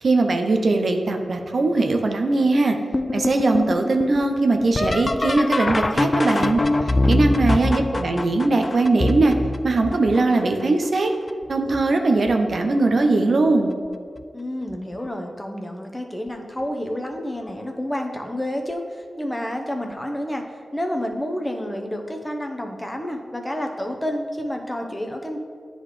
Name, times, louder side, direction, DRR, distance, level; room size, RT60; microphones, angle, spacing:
voice 1, 0.0-2.8 3.1-6.6 7.1-9.3 9.6-11.1 11.5-13.8, right 2 dB, 70° right, 4 dB, 0.5 m, -20 dB
sound 1, 2.9-10.6 11.3-11.8 12.3-12.9 14.2-14.3 15.0-15.3 17.5-17.6 19.9-20.0, left 2 dB, 35° left, 0.3 m, -24 dB
voice 2, 7.3-8.2 14.3-20.5 20.7-25.4, equal, 15° left, 3 dB, 0.8 m, -30 dB
9.7 x 3.9 x 3.2 m, 2.1 s
cardioid pair, 45°, 0 cm